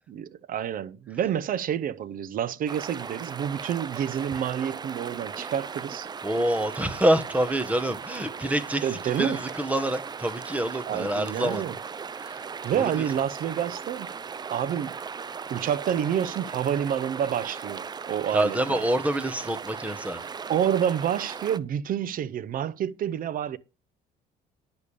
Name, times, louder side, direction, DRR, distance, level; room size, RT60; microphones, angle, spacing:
voice 1, 0.1-6.1 8.8-9.4 10.9-11.8 12.6-14.1 14.5-15.0 15.5-18.8 20.5-23.6, right 9 dB, 55° right, 0.8 m, -28 dB
sound 1, 2.7-21.6, right 6 dB, 25° right, 0.5 m, -38 dB
voice 2, 6.2-11.6 12.2-12.4 12.7-12.9 18.3-20.2, right 1 dB, 10° right, 1.5 m, -26 dB
10.5 x 6.8 x 5.1 m
cardioid pair, 110°, 17 cm